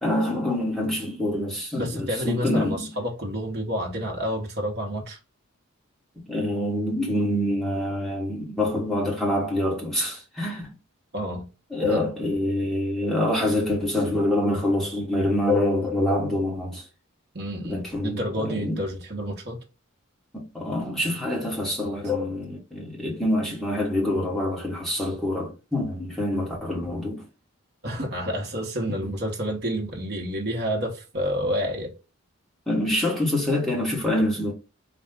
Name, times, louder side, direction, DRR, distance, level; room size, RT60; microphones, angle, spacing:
voice 1, 0.0-2.9 6.3-10.7 11.7-16.8 17.6-18.8 20.3-27.2 29.0-29.1 32.7-34.5, left 1 dB, ahead, 1.2 m, -26 dB
voice 2, 1.8-5.2 11.1-11.5 11.8-12.1 17.3-19.6 27.8-31.9, equal, 50° right, 1.0 m, -29 dB
4.2 x 2.3 x 3.6 m
head